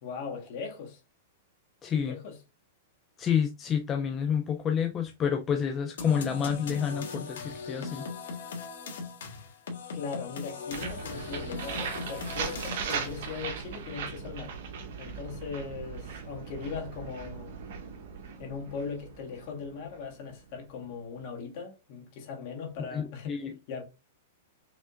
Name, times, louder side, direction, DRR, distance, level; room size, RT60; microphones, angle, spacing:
voice 1, 0.0-1.0 1.9-2.4 9.9-14.5 15.0-17.6 18.4-23.8, left 5 dB, 50° left, 2.1 m, -39 dB
voice 2, 1.8-2.2 3.2-8.1 22.9-23.5, left 7 dB, 20° left, 0.5 m, -29 dB
sound 1, 6.0-13.4, left 4 dB, 85° left, 1.7 m, -39 dB
sound 2, 10.7-20.5, right 6 dB, 60° right, 1.4 m, -38 dB
5.1 x 3.3 x 2.5 m
hypercardioid pair, 145°, 0 cm